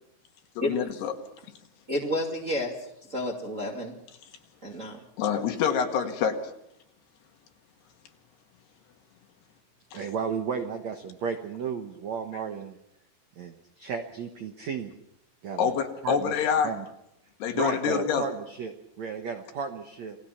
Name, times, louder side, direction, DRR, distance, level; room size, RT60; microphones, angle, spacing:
voice 1, 0.6-1.1 5.2-6.4 9.9-10.0 15.6-16.7 17.4-18.3, left 7 dB, 70° left, 5 dB, 3.6 m, -26 dB
voice 2, 1.9-4.0 4.6-5.0, left 1 dB, 25° right, -1 dB, 1.7 m, -31 dB
voice 3, 9.9-12.8 13.4-14.9 15.4-15.7 16.0-16.8 17.5-20.2, right 6 dB, 70° right, 5 dB, 1.7 m, -34 dB
28.5 x 19.5 x 5.9 m, 0.80 s
omnidirectional pair, 5.1 m